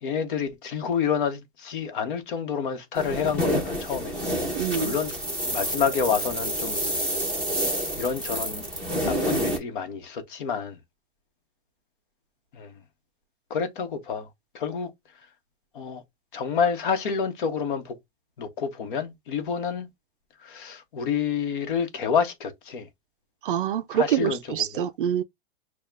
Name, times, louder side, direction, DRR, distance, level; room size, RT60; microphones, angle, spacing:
voice 1, 0.0-5.1 5.5-7.1 8.0-8.6 9.0-10.8 12.5-12.7 13.5-14.3 14.5-14.9 15.7-16.0 16.3-18.0 18.4-19.9 20.4-22.9 23.9-24.6, left 6 dB, 50° left, 1.1 m, -28 dB
sound 1, 2.9-9.6, equal, 5° left, 0.9 m, -28 dB
voice 2, 4.5-4.9 23.4-25.2, right 10 dB, 55° right, 0.4 m, -26 dB
6.3 x 2.3 x 2.4 m
supercardioid pair, 175°, 33 cm